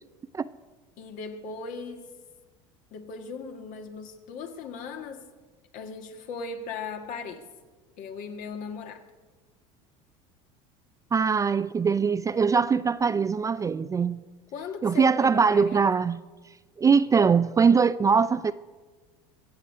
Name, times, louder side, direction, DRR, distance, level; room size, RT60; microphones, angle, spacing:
voice 1, 1.0-2.1 2.9-5.3 5.7-7.5 8.0-9.1 14.5-15.9, left 5 dB, 60° left, 5 dB, 1.8 m, -38 dB
voice 2, 11.1-14.2 14.8-16.2 16.8-18.5, right 5 dB, 20° right, 13 dB, 0.4 m, -22 dB
22.0 x 8.0 x 5.6 m, 1.3 s
supercardioid pair, 100°, 16 cm